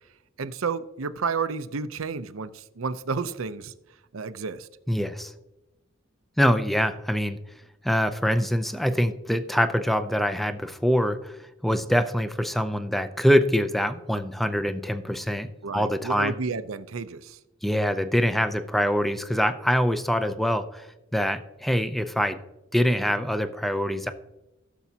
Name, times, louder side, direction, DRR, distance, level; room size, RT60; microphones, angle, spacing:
voice 1, 0.4-3.7 4.1-4.7 15.6-17.4, right 5 dB, 80° right, 0.6 m, -31 dB
voice 2, 4.9-5.3 6.4-7.4 7.8-16.3 17.6-20.9 21.1-22.4 22.7-24.1, equal, ahead, 0.5 m, -24 dB
16.5 x 7.0 x 2.8 m
head